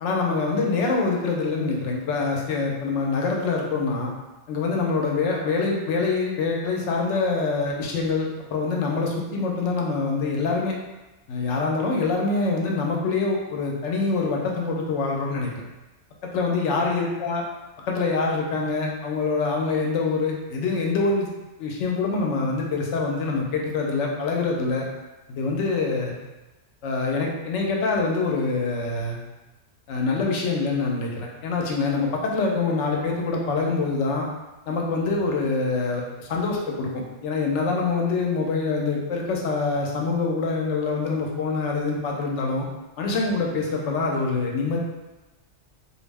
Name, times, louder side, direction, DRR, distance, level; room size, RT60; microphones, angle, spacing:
voice 1, 0.0-4.1 4.5-10.7 11.3-15.6 16.2-17.4 17.9-21.3 21.6-24.8 25.3-26.1 26.8-29.2 29.9-34.3 34.7-42.7 43.0-44.8, left 4 dB, 80° left, -1 dB, 0.9 m, -25 dB
2.4 x 2.0 x 3.3 m, 1.1 s
omnidirectional pair, 1.2 m